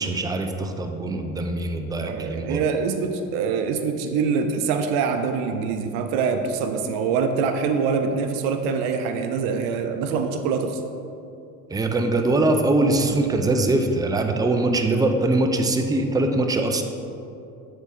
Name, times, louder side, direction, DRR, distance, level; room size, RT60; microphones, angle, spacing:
voice 1, 0.0-2.7 11.7-16.8, right 2 dB, 10° right, 5 dB, 0.5 m, -22 dB
voice 2, 2.0-10.8, right 5 dB, 75° right, 7 dB, 0.6 m, -24 dB
sound 1, 6.5-7.6, equal, 45° right, 1.5 m, -41 dB
8.0 x 3.7 x 4.2 m, 2.6 s
supercardioid pair, 80°, 39 cm